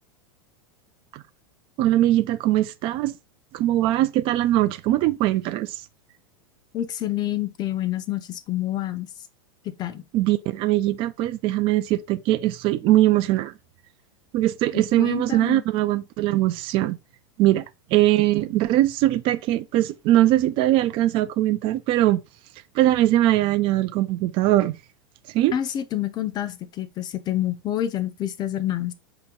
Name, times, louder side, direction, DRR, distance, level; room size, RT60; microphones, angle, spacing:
voice 1, 1.8-3.1 3.5-5.7 10.1-13.5 14.3-17.0 17.4-17.6 17.9-22.2 22.7-24.8 25.3-25.5, right 14 dB, 45° right, 0.4 m, -21 dB
voice 2, 6.7-9.1 9.8-10.0 14.7-15.6 25.5-28.9, left 12 dB, 35° left, 0.7 m, -28 dB
4.2 x 3.0 x 3.8 m
hypercardioid pair, 120°, 12 cm